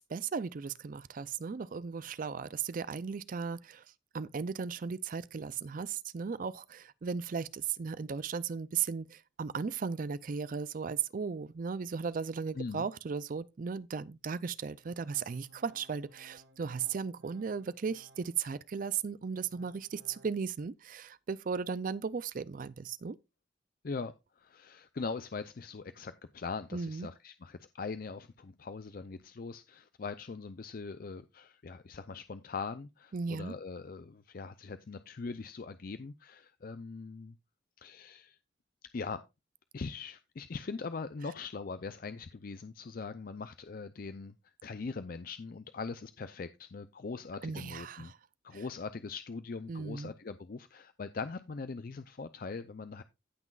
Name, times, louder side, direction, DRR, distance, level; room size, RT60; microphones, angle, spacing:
voice 1, 0.0-3.8 4.1-23.2 26.7-27.1 33.1-33.6 47.4-48.2 48.5-48.6 49.7-50.1, right 6 dB, 45° right, 0.4 m, -36 dB
voice 2, 12.6-12.9 23.8-37.4 37.8-38.4 38.9-39.2 39.7-48.1 48.4-53.0, left 4 dB, 50° left, 0.5 m, -41 dB
Organ, 14.8-18.6 19.1-20.4, right 1 dB, 65° right, 1.2 m, -61 dB
16.0 x 6.0 x 2.4 m
head